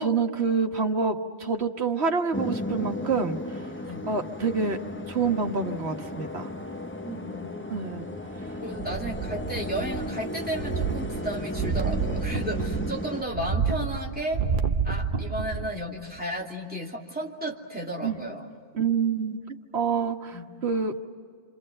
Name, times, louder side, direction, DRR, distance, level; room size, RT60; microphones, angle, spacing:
voice 1, 0.0-3.7 4.1-4.8 5.1-6.5 7.7-8.1 18.0-18.2 18.7-20.9, right 5 dB, 90° right, 4 dB, 1.7 m, -27 dB
sound 1, 2.3-13.2, left 1 dB, 10° left, 0.8 m, -35 dB
voice 2, 7.0-7.5 8.6-14.4 14.8-18.5 20.3-20.5, right 1 dB, 10° right, -2 dB, 2.8 m, -33 dB
sound 2, 8.8-10.2 10.5-15.8 16.2-16.3, right 5 dB, 55° right, 1.0 m, -29 dB
28.5 x 26.5 x 7.8 m, 2.2 s
omnidirectional pair, 1.1 m